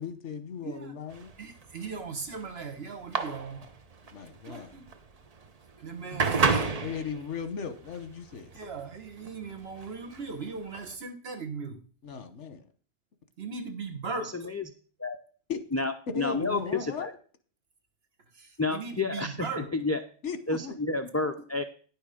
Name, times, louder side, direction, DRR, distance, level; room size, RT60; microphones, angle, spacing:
voice 1, 0.0-1.3 4.1-4.7 6.8-8.5 12.0-12.6 15.5-15.6 16.1-17.1 20.2-20.7, left 6 dB, 85° left, 10 dB, 1.4 m, -37 dB
voice 2, 0.6-0.9 1.4-3.6 4.5-4.8 5.8-6.8 8.5-11.8 13.4-14.4 18.4-19.7, right 4 dB, 60° right, 4 dB, 1.5 m, -38 dB
sound 1, 1.1-11.0, right 4 dB, 40° right, 0.8 m, -32 dB
voice 3, 14.2-14.7 15.0-15.2 15.7-17.1 18.6-20.0 20.5-21.6, left 3 dB, 25° left, 7 dB, 0.3 m, -30 dB
9.9 x 6.3 x 5.0 m, 0.42 s
omnidirectional pair, 1.2 m